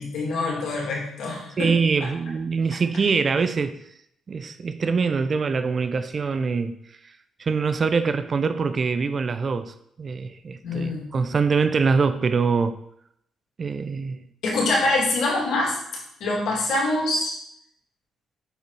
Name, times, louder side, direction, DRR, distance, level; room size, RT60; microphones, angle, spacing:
voice 1, 0.0-1.7 10.6-11.1 14.4-15.8 16.2-17.3, left 2 dB, 80° left, -3 dB, 2.5 m, -24 dB
voice 2, 1.6-3.8 4.3-6.8 7.4-12.8 13.6-14.2, right 5 dB, 40° right, 11 dB, 0.5 m, -24 dB
6.8 x 4.2 x 4.8 m, 0.74 s
cardioid pair, 90°, 0 cm